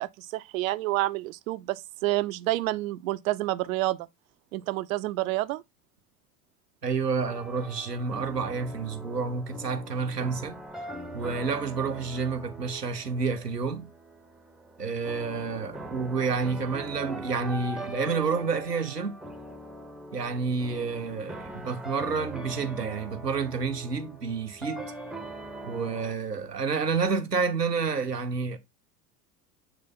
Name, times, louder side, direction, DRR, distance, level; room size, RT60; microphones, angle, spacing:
voice 1, 0.0-4.0 4.5-5.6, right 17 dB, 60° right, 0.6 m, -29 dB
voice 2, 6.8-10.6 11.1-13.9 14.8-19.2 20.1-24.9 25.6-28.6, right 5 dB, 90° right, 1.0 m, -29 dB
sound 1, 7.2-26.1, right 1 dB, ahead, 0.8 m, -41 dB
7.9 x 3.4 x 3.9 m
figure-of-eight pair, 75°, 47 cm